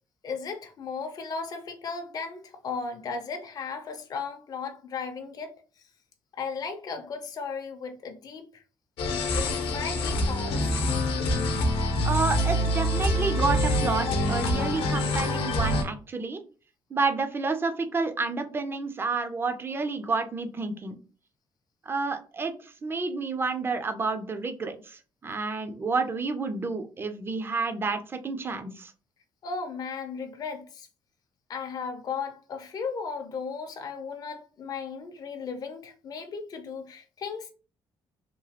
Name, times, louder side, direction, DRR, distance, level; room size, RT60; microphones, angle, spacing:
voice 1, 0.2-5.5 6.4-8.6 9.3-10.7 29.4-30.9 31.5-37.5, left 5 dB, 45° left, 0.5 m, -36 dB
sound 1, 9.0-15.8, left 1 dB, 80° left, 0.7 m, -26 dB
voice 2, 12.0-16.4 16.9-20.9 21.9-28.9, right 4 dB, 25° right, 0.4 m, -30 dB
3.0 x 2.3 x 2.8 m
cardioid pair, 120°, 9 cm